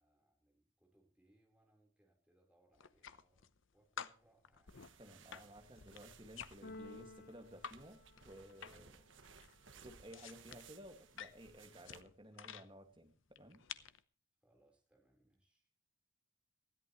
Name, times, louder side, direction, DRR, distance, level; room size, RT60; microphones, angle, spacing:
voice 1, 0.0-4.8 14.4-15.7, right 1 dB, 5° right, 0 dB, 4.1 m, -74 dB
sound 1, 2.7-3.6 4.0-7.8 8.1-9.0 9.2-12.7 13.3-14.0, left 8 dB, 85° left, 0.8 m, -51 dB
sound 2, 4.7-12.0, right 5 dB, 80° right, 1.2 m, -62 dB
voice 2, 5.0-9.0 9.8-13.6, equal, 25° right, 4 dB, 2.0 m, -56 dB
Keyboard (musical), 6.6-8.7, left 2 dB, 50° left, 0.9 m, -55 dB
20.0 x 13.5 x 3.1 m, 0.39 s
head